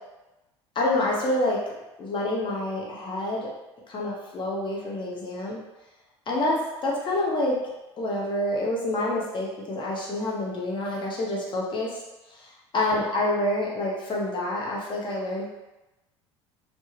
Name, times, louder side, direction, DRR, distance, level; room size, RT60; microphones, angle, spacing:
voice 1, 0.7-1.6 2.0-3.5 3.9-5.6 6.3-7.6 8.0-12.0 12.3-15.5, left 1 dB, 30° left, -4 dB, 0.8 m, -27 dB
2.2 x 2.1 x 3.1 m, 1.0 s
figure-of-eight pair, 65°, 16 cm